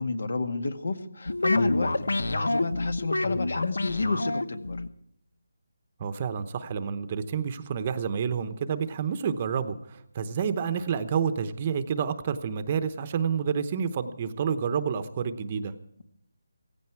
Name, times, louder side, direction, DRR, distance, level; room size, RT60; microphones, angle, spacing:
voice 1, 0.0-4.8, left 3 dB, 70° left, 9 dB, 1.9 m, -30 dB
sound 1, 1.3-4.9, left 2 dB, 85° left, 1.0 m, -28 dB
voice 2, 6.0-15.7, right 7 dB, 25° right, 10 dB, 0.9 m, -29 dB
17.0 x 15.5 x 4.7 m, 0.72 s
hypercardioid pair, 170°, 0 cm